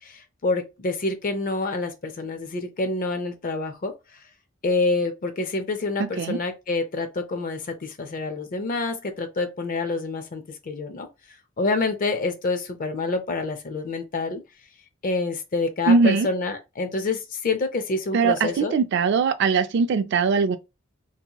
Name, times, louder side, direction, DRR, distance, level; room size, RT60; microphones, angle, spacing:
voice 1, 0.0-4.2 4.6-11.1 11.6-14.4 15.0-18.7, left 3 dB, 40° left, 0.5 m, -27 dB
voice 2, 6.0-6.4 15.9-16.3 18.1-20.6, right 4 dB, 55° right, 0.3 m, -21 dB
2.8 x 2.7 x 2.2 m
head